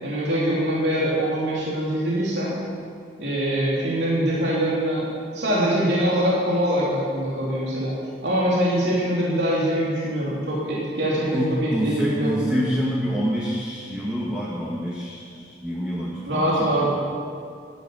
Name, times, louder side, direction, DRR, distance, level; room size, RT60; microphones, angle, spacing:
voice 1, 0.0-2.5 3.2-5.1 5.3-7.9 8.2-12.5 16.2-16.9, equal, 75° right, -6 dB, 3.3 m, -23 dB
voice 2, 11.3-16.9, equal, 5° right, -6 dB, 1.5 m, -27 dB
14.0 x 10.5 x 7.1 m, 2.3 s
head